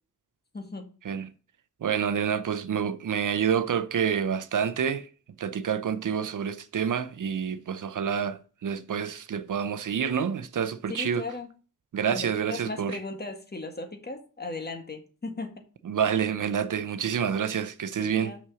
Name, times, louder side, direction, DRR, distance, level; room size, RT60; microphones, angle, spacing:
voice 1, 0.5-0.9 10.9-11.5 12.1-15.5 18.0-18.4, left 3 dB, 30° left, 1.7 m, -37 dB
voice 2, 1.8-5.1 5.4-11.2 11.9-13.0 15.9-18.3, right 7 dB, 65° right, 0.7 m, -28 dB
6.3 x 5.9 x 6.8 m
wide cardioid pair, 100°, 34 cm